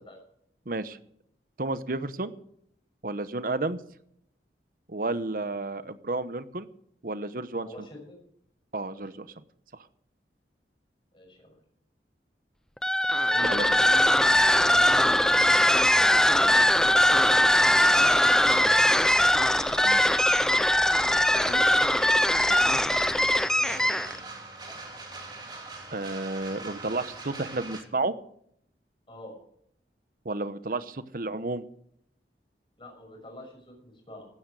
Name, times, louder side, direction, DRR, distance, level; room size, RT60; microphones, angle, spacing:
voice 1, 0.7-1.0 1.6-2.3 3.0-3.8 4.9-6.7 7.0-7.7 8.7-9.4 13.5-13.6 19.8-20.2 25.9-28.1 30.2-31.6, right 2 dB, 50° right, 13 dB, 0.9 m, -31 dB
voice 2, 7.6-8.2 8.9-9.0 11.1-11.6 13.3-14.1 14.6-15.5 16.0-17.9 18.2-19.0 21.0-21.6 22.0-24.3 29.1-29.4 32.8-34.3, left 1 dB, 30° left, 1 dB, 6.3 m, -45 dB
sound 1, 12.8-24.2, left 1 dB, 5° left, 0.5 m, -21 dB
sound 2, 13.2-27.8, right 3 dB, 25° right, 3.1 m, -43 dB
16.0 x 12.5 x 4.8 m, 0.70 s
head